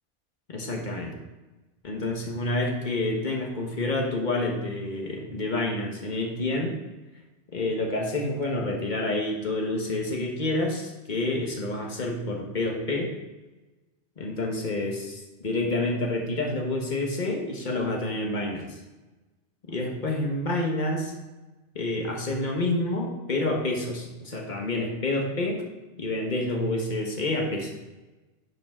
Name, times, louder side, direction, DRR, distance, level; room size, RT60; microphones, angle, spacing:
voice 1, 0.5-1.2 1.8-6.8 7.5-13.1 14.2-18.8 19.7-21.1 21.7-25.6 26.0-27.7, left 2 dB, 40° left, 0 dB, 1.4 m, -28 dB
10.0 x 5.6 x 3.7 m, 1.2 s
omnidirectional pair, 1.2 m